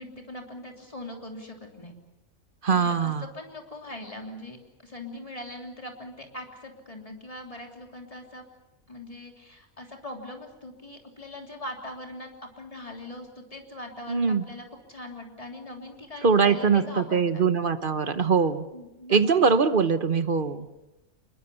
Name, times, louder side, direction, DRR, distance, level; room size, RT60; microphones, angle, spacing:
voice 1, 0.0-1.9 2.7-8.4 8.9-12.3 12.6-17.4 18.7-19.2, left 1 dB, 25° left, 2 dB, 3.3 m, -41 dB
voice 2, 2.6-3.3 14.1-14.4 16.2-18.7 19.1-20.7, right 5 dB, 40° right, 11 dB, 1.1 m, -22 dB
25.5 x 22.0 x 7.0 m, 1.0 s
omnidirectional pair, 1.5 m